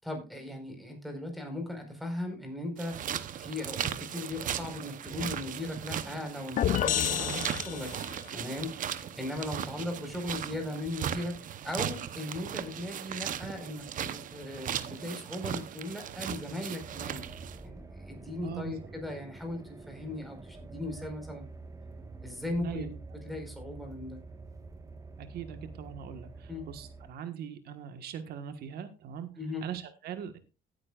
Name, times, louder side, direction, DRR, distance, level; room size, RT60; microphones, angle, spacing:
voice 1, 0.0-7.9 8.3-11.3 11.6-17.2 17.6-21.5 22.2-22.9 23.2-24.2 26.5-26.7 29.4-29.7, left 1 dB, ahead, 3 dB, 4.6 m, -38 dB
sound 1, 2.8-17.6, right 9 dB, 50° right, 0.9 m, -37 dB
sound 2, 6.6-8.3, left 11 dB, 50° left, 0.5 m, -29 dB
voice 2, 7.1-7.4 9.5-9.7 18.4-18.8 22.5-22.9 25.2-29.3 29.6-30.4, right 8 dB, 70° right, 9 dB, 1.5 m, -41 dB
sound 3, 16.8-27.1, right 3 dB, 20° right, 1.4 m, -47 dB
16.0 x 9.6 x 2.4 m, 0.29 s
cardioid pair, 110°, 17 cm